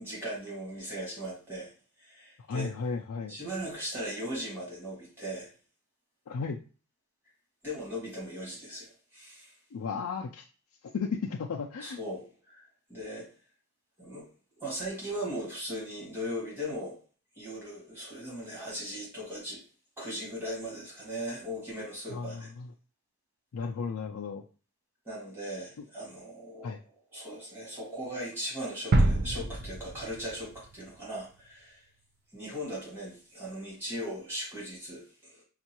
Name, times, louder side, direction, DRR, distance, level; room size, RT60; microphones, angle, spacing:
voice 1, 0.0-1.7 2.0-2.7 3.3-5.5 7.6-9.5 11.8-13.3 14.0-14.3 14.6-17.0 17.4-19.6 20.0-22.5 25.0-26.8 27.1-31.8 32.3-35.4, equal, 10° right, -6 dB, 1.8 m, -38 dB
voice 2, 2.5-3.4 6.3-6.6 9.7-10.4 10.9-12.0 22.1-22.7 23.5-24.4 26.6-26.8, left 5 dB, 75° left, 1 dB, 0.4 m, -34 dB
sound 1, 28.9-30.8 31.2-31.3, right 2 dB, 45° right, 0.4 m, -27 dB
5.2 x 2.4 x 2.9 m, 0.37 s
head